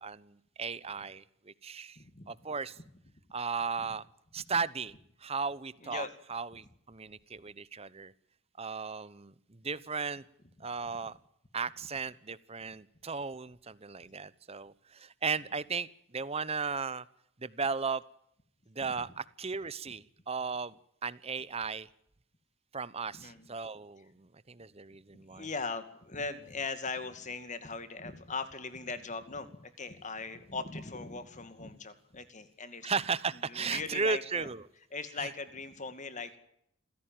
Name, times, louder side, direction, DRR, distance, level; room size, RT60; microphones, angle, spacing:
voice 1, 0.0-2.0 2.3-2.8 3.3-4.0 4.3-4.9 5.2-8.1 8.6-10.2 10.6-11.2 11.5-15.9 16.1-17.0 17.4-18.0 18.7-20.8 21.0-21.9 22.7-25.5 32.8-34.6 35.2-35.3, right 5 dB, 30° right, 18 dB, 0.9 m, -36 dB
voice 2, 2.0-2.3 3.8-3.9 5.8-6.1 18.8-19.1 23.1-23.5 25.1-32.9 33.5-34.5 34.9-36.4, left 4 dB, 35° left, 11 dB, 2.3 m, -40 dB
27.0 x 16.5 x 9.1 m, 0.75 s
head